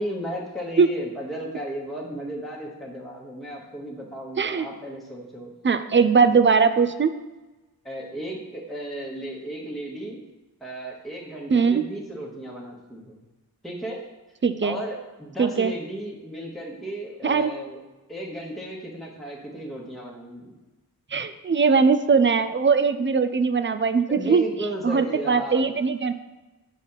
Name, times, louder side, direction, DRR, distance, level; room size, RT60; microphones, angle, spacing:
voice 1, 0.0-5.5 7.8-10.2 10.6-13.2 13.6-14.0 14.6-17.8 18.1-20.5 24.1-25.7, right 1 dB, ahead, -3 dB, 1.2 m, -34 dB
voice 2, 4.4-4.7 5.6-7.1 11.5-11.8 14.4-14.8 15.4-15.7 17.2-17.5 21.1-24.4 24.8-26.1, right 5 dB, 30° right, 10 dB, 0.4 m, -20 dB
5.8 x 4.1 x 5.6 m, 1.1 s
wide cardioid pair, 95°, 38 cm